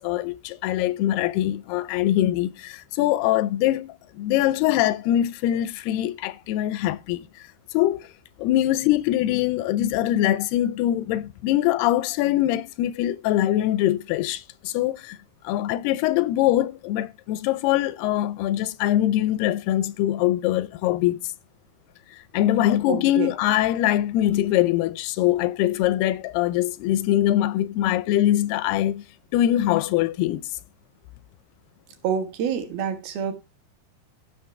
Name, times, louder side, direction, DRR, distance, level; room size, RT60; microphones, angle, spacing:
voice 1, 0.0-7.5 7.7-8.1 8.4-15.2 15.4-21.2 22.3-29.1 29.3-30.4, left 13 dB, 80° left, 2.5 m, -23 dB
voice 2, 22.9-23.3 32.0-33.3, right 7 dB, 70° right, 3.2 m, -27 dB
16.0 x 6.5 x 3.3 m
omnidirectional pair, 4.7 m